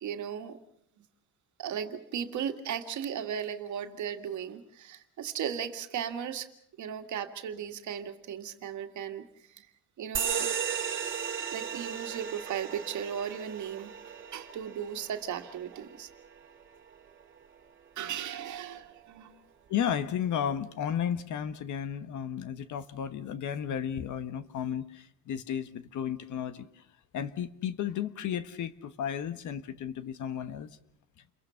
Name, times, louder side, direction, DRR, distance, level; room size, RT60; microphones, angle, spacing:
voice 1, 0.0-0.6 1.0-1.1 1.6-6.5 6.8-9.7 10.0-10.6 11.4-13.9 14.3-16.1 18.0-19.4, right 8 dB, 50° right, 2.1 m, -36 dB
sound 1, 10.1-17.2, right 8 dB, 30° right, 2.6 m, -36 dB
voice 2, 19.7-26.8 27.1-30.7, left 9 dB, 55° left, 1.4 m, -33 dB
29.5 x 23.0 x 5.8 m
cardioid pair, 140°, 37 cm